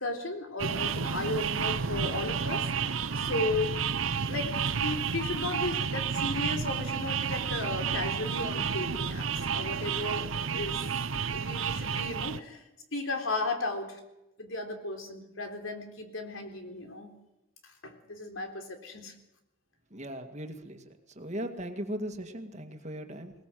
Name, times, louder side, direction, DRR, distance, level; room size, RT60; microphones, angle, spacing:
voice 1, 0.0-3.8 4.3-10.8 11.3-12.6 12.9-14.0 14.4-17.1 17.6-19.1, left 2 dB, 80° left, 4 dB, 3.7 m, -35 dB
sound 1, 0.6-12.4, right 6 dB, 80° right, 0.8 m, -31 dB
voice 2, 19.9-23.3, equal, 35° right, 6 dB, 2.1 m, -38 dB
21.0 x 20.0 x 7.7 m, 0.92 s
head